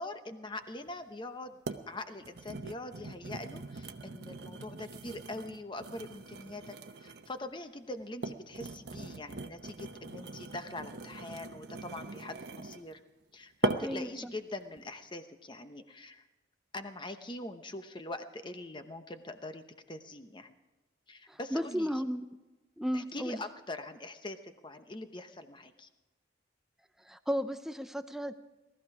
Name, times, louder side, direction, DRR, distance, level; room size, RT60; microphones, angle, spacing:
voice 1, 0.0-1.6 1.9-13.0 13.3-16.3 16.7-20.5 21.1-21.9 22.9-25.9, left 2 dB, 25° left, 8 dB, 0.9 m, -43 dB
sound 1, 0.9-1.0 1.7-1.9 2.2-7.4 8.0-12.9 13.6-14.1 14.6-14.8, right 3 dB, 60° right, 0.9 m, -40 dB
voice 2, 13.8-14.3 21.3-22.2 22.8-23.4 27.1-28.3, equal, ahead, 10 dB, 0.5 m, -34 dB
19.0 x 13.5 x 4.9 m, 1.1 s
head